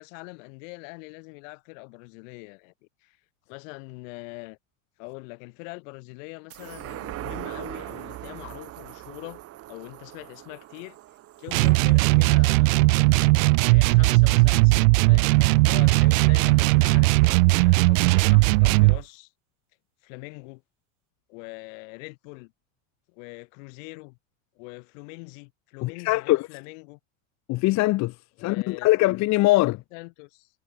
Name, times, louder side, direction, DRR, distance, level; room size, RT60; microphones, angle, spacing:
voice 1, 0.0-2.7 3.0-3.2 3.5-4.6 5.0-9.4 9.7-11.0 11.4-12.8 13.7-15.4 15.6-19.3 20.0-20.6 21.3-22.5 23.1-24.2 24.6-27.0 28.4-28.9 29.9-30.5, left 31 dB, 65° left, 3.0 m, -43 dB
sound 1, 6.5-13.3 13.7-13.8, right 15 dB, 35° right, 1.0 m, -41 dB
sound 2, 11.5-19.0, right 26 dB, 70° right, 0.5 m, -18 dB
voice 2, 25.8-26.5 27.5-28.1 28.4-29.8, left 19 dB, 40° left, 0.9 m, -22 dB
supercardioid pair, 120°, 41 cm